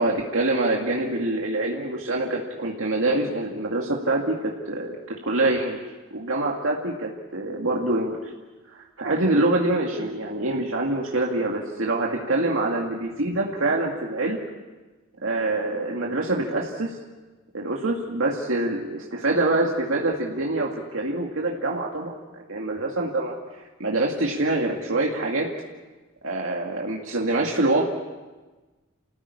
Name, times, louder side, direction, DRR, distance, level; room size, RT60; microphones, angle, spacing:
voice 1, 0.0-5.0 5.2-5.8 6.1-8.3 8.7-14.4 15.2-16.9 17.5-23.3 23.8-25.5 26.2-27.8, right 2 dB, 85° right, -1 dB, 2.3 m, -25 dB
28.0 x 15.0 x 9.7 m, 1.2 s
head